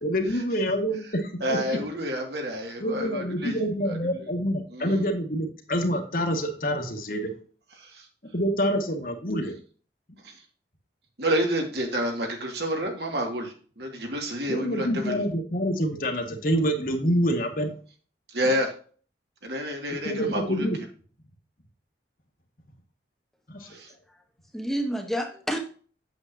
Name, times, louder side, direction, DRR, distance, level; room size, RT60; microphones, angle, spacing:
voice 1, 0.0-1.6 2.8-7.3 8.3-9.5 14.5-17.7 20.0-20.8 23.5-23.7, equal, 50° left, 3 dB, 1.6 m, -27 dB
voice 2, 1.4-4.3 4.7-5.0 7.8-8.1 10.2-10.4 11.2-15.2 18.3-18.7 19.4-20.7 23.6-23.9, equal, 70° right, 2 dB, 2.2 m, -29 dB
voice 3, 24.5-25.6, equal, ahead, 3 dB, 1.1 m, -29 dB
8.2 x 7.8 x 2.8 m, 0.42 s
head